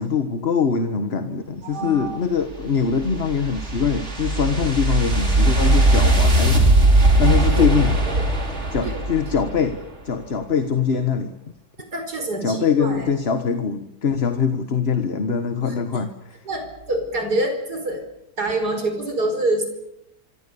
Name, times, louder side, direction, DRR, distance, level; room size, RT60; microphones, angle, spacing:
voice 1, 0.0-6.6 7.2-7.9 8.7-9.8 10.0-11.4 12.4-16.4, left 6 dB, 40° left, 8 dB, 1.5 m, -23 dB
voice 2, 1.6-2.2 7.5-7.8 8.8-9.0 11.9-13.1 16.5-18.0 18.4-19.7, right 2 dB, 65° right, 6 dB, 5.4 m, -26 dB
sound 1, 2.5-9.8, right 2 dB, 40° right, 3.8 m, -19 dB
25.5 x 24.0 x 7.0 m, 0.85 s
omnidirectional pair, 1.8 m